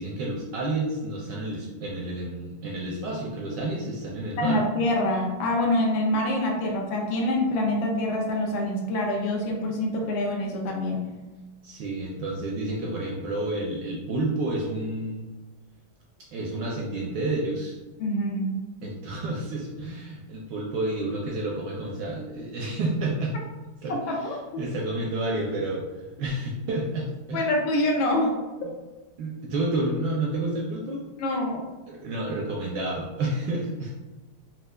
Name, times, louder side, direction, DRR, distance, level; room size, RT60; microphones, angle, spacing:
voice 1, 0.0-4.6 11.6-15.3 16.3-17.8 18.8-23.3 23.8-23.9 24.6-25.9 26.2-27.5 28.1-28.3 29.2-31.0 31.9-33.9, right 2 dB, 75° right, -3 dB, 1.0 m, -30 dB
voice 2, 4.4-11.0 18.0-18.6 24.1-24.4 27.3-28.3 31.2-31.6, left 1 dB, 75° left, 0 dB, 1.3 m, -25 dB
4.3 x 2.3 x 2.2 m, 1.2 s
omnidirectional pair, 2.3 m